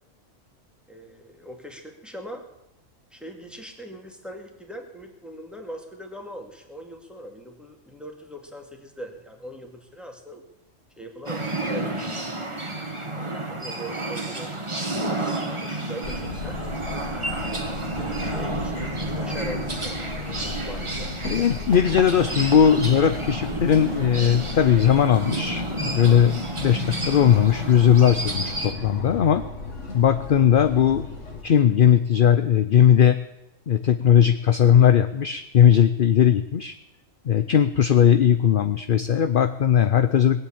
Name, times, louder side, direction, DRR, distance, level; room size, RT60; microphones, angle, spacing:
voice 1, 0.9-2.5 3.1-10.4 11.0-12.1 12.8-14.5 14.8-16.6 17.3-21.1 21.7-21.8, equal, ahead, 3 dB, 2.1 m, -41 dB
sound 1, 11.3-28.7, right 2 dB, 25° right, 1.6 m, -31 dB
sound 2, 16.0-31.4, left 3 dB, 65° left, 2.3 m, -35 dB
voice 2, 21.3-29.4 29.9-31.0 31.4-33.2 33.7-36.8 37.2-40.4, left 9 dB, 50° left, 10 dB, 0.7 m, -18 dB
20.0 x 7.8 x 8.7 m, 0.91 s
omnidirectional pair, 1.4 m